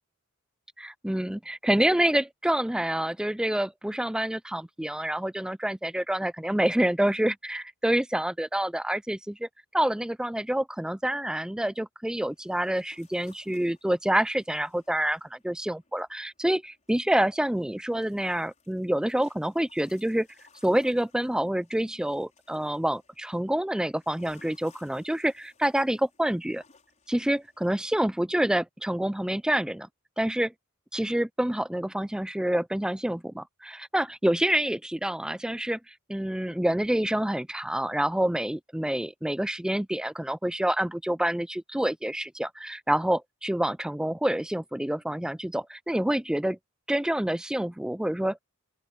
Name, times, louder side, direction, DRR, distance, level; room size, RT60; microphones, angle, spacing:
voice 1, 0.8-20.3 20.6-26.6 27.1-29.9 30.2-30.5 30.9-46.6 46.9-48.4, right 1 dB, 5° right, 0.4 m, -27 dB
sound 1, 12.3-28.0, left 4 dB, 35° left, 5.6 m, -63 dB
open air
head